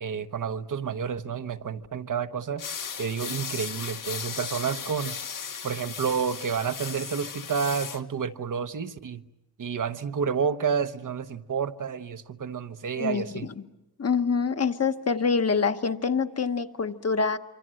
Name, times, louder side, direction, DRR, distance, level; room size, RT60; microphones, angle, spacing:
voice 1, 0.0-2.6 3.0-5.2 5.6-9.2 9.6-13.5, right 6 dB, 55° right, 10 dB, 1.1 m, -30 dB
sound 1, 2.6-8.0, left 6 dB, 55° left, 1.4 m, -36 dB
voice 2, 14.0-17.4, left 5 dB, 40° left, 8 dB, 1.1 m, -25 dB
27.0 x 25.0 x 7.7 m, 0.96 s
wide cardioid pair, 160°, 38 cm